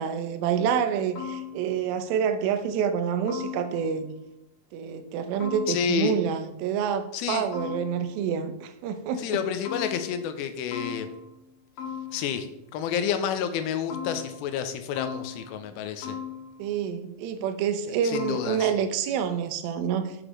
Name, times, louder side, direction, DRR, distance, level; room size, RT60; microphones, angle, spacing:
voice 1, 0.0-4.1 4.7-9.2 16.6-20.2, right 7 dB, 90° right, 8 dB, 2.5 m, -27 dB
sound 1, 1.2-1.9 3.3-4.1 5.4-6.2 7.5-8.3 9.7-10.4 10.7-11.5 11.8-12.6 13.9-14.7 15.0-15.8 16.0-16.8 18.1-18.8, left 8 dB, 65° left, 2.7 m, -38 dB
voice 2, 5.7-6.2 7.1-7.5 9.2-11.1 12.1-12.5 12.7-16.2 17.9-18.7, left 7 dB, 90° left, 9 dB, 2.4 m, -29 dB
6.4 x 5.9 x 3.0 m, 0.85 s
omnidirectional pair, 4.2 m